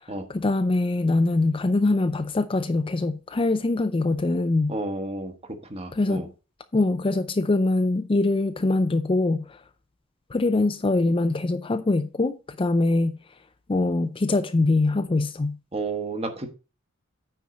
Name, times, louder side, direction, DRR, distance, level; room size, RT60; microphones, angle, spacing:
voice 1, 0.3-4.7 5.9-6.3 6.7-9.4 10.3-13.2 13.7-15.6, left 2 dB, 25° left, 0.4 m, -23 dB
voice 2, 4.7-5.3 5.7-6.3 15.7-16.5, right 2 dB, 30° right, 1.4 m, -31 dB
9.2 x 4.5 x 5.1 m
head